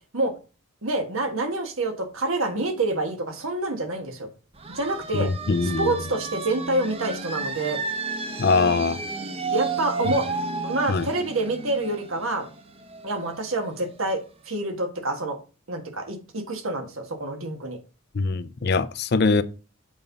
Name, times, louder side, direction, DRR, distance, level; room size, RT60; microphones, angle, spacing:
voice 1, 0.8-4.3 4.7-5.3 5.6-7.8 9.5-10.2 10.6-12.5 13.0-14.2 14.5-15.4 15.7-17.8, right 2 dB, 75° right, 1.6 m, -27 dB
sound 1, 4.6-14.0, right 4 dB, 30° right, 0.8 m, -33 dB
voice 2, 5.1-5.9 8.4-9.0 10.1-10.2 10.9-11.1 18.1-19.4, left 4 dB, 50° left, 0.5 m, -22 dB
7.2 x 5.4 x 4.1 m
head